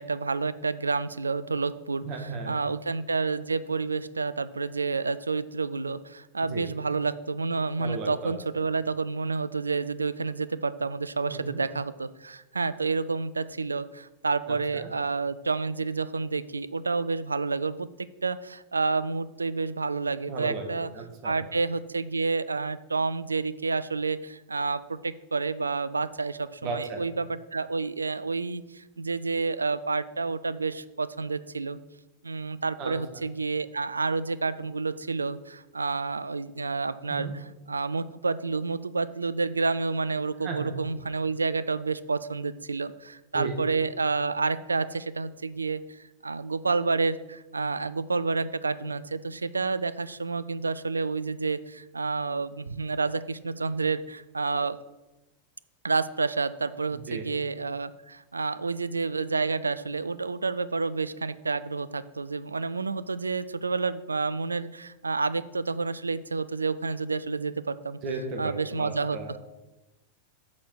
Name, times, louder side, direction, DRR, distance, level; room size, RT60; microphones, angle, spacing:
voice 1, 0.0-17.9 18.2-20.9 21.2-31.8 32.2-54.8 55.8-68.0 68.4-69.4, right 4 dB, 80° right, 15 dB, 0.3 m, -29 dB
voice 2, 2.0-2.6 6.5-6.6 7.8-8.6 11.3-11.6 14.5-14.9 20.3-20.7 20.9-21.4 26.6-27.1 32.8-32.9 37.1-37.3 40.4-40.7 43.3-43.5 56.9-57.2 68.0-69.4, right 4 dB, 40° right, 3 dB, 1.6 m, -35 dB
6.3 x 6.0 x 6.3 m, 1.0 s
figure-of-eight pair, 90°, 0 cm